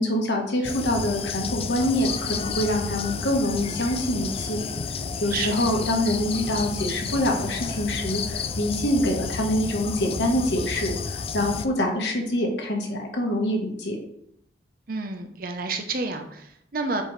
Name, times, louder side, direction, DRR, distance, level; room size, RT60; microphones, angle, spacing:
voice 1, 0.0-4.6 5.2-14.0, left 1 dB, 75° left, 2 dB, 1.3 m, -25 dB
sound 1, 0.6-11.7, left 5 dB, 35° left, 0.3 m, -31 dB
voice 2, 5.3-5.7 14.9-17.0, right 3 dB, 50° right, 5 dB, 0.7 m, -30 dB
7.8 x 4.7 x 3.2 m, 0.74 s
head